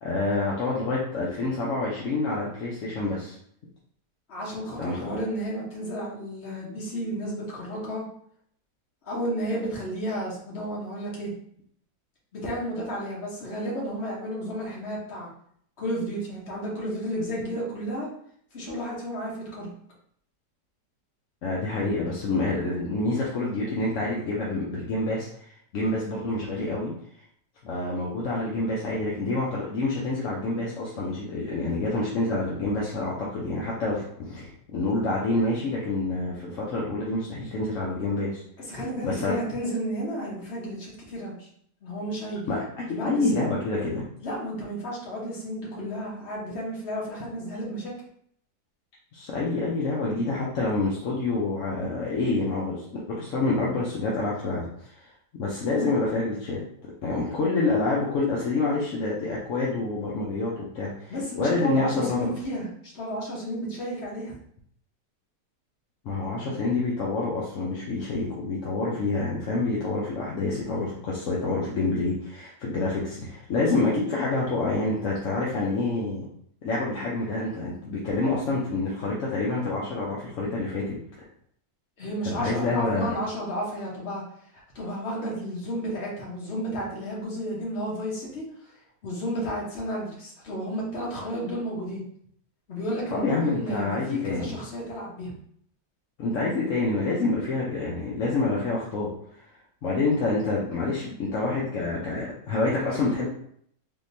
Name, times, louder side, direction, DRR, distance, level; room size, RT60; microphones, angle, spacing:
voice 1, 0.0-3.4 4.8-5.0 21.4-26.9 27.6-38.4 39.0-39.3 42.5-42.6 43.0-44.0 49.1-55.1 55.3-56.6 57.0-62.3 66.0-76.2 76.6-80.9 82.2-83.1 93.1-94.5 96.2-99.1 99.4-99.5 99.8-103.3, left 2 dB, 60° left, -5 dB, 0.8 m, -27 dB
voice 2, 4.3-8.0 9.0-11.3 12.3-15.3 15.8-18.1 18.5-19.7 38.6-41.5 41.8-42.4 42.9-43.5 44.2-47.9 61.1-64.3 82.0-84.2 84.7-88.7 89.0-92.0 92.7-95.3, equal, 45° left, -4 dB, 1.2 m, -32 dB
3.6 x 2.8 x 2.6 m, 0.66 s
omnidirectional pair, 1.9 m